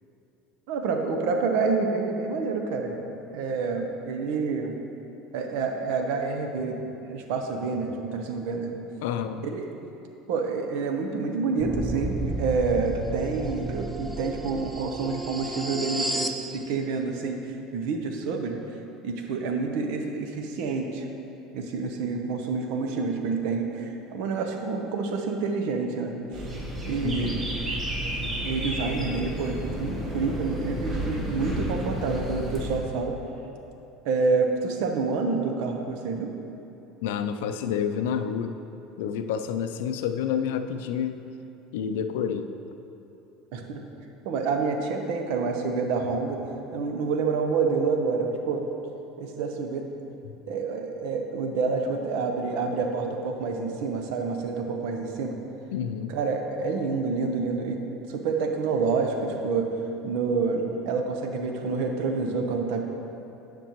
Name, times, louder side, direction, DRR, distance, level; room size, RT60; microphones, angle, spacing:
voice 1, 0.7-3.0 3.3-4.7 5.3-8.7 9.4-9.7 10.3-18.6 19.0-21.1 21.5-26.5 26.9-27.4 28.2-33.1 34.0-36.3 43.5-43.8 44.2-46.4 46.7-48.6 49.2-49.9 50.5-55.4 56.1-57.8 58.1-59.7 60.0-62.8, right 4 dB, 75° right, 4 dB, 0.7 m, -28 dB
voice 2, 9.0-9.4 27.0-27.4 37.0-38.5 39.0-41.2 41.7-42.5 50.2-50.4 55.7-56.2, left 8 dB, 85° left, 9 dB, 0.4 m, -29 dB
sound 1, 11.6-16.4, right 2 dB, 5° right, 0.5 m, -32 dB
sound 2, 26.3-32.8, right 1 dB, 25° right, 1.1 m, -32 dB
sound 3, 28.0-31.9, left 4 dB, 40° left, 0.6 m, -43 dB
10.0 x 5.2 x 3.0 m, 2.9 s
supercardioid pair, 110°, 0 cm